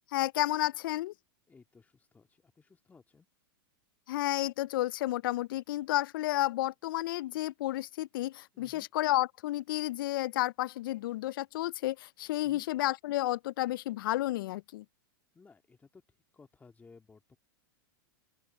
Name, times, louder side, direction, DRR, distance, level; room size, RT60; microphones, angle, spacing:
voice 1, 0.1-1.1 4.1-14.8, left 16 dB, 65° left, 0.4 m, -31 dB
voice 2, 1.5-3.3 8.5-8.9 12.4-12.6 15.3-16.0 16.3-17.4, left 4 dB, 15° left, 2.2 m, -58 dB
open air
hypercardioid pair, 115°, 12 cm